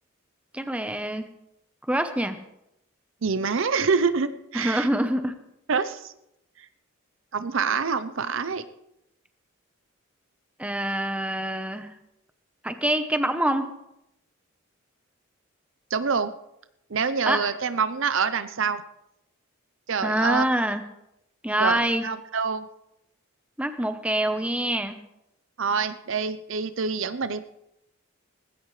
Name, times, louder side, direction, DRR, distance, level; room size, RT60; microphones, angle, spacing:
voice 1, 0.5-1.3 1.9-2.4 4.5-5.3 10.6-11.9 12.6-13.7 17.3-17.5 20.0-20.8 21.4-22.1 23.6-25.0, right 1 dB, 5° right, 8 dB, 0.8 m, -25 dB
voice 2, 3.2-4.9 5.7-6.1 7.3-8.6 15.9-16.3 16.9-18.8 19.9-20.4 21.6-22.7 25.6-27.4, right 5 dB, 60° right, 12 dB, 0.6 m, -26 dB
19.5 x 16.0 x 3.2 m, 0.83 s
head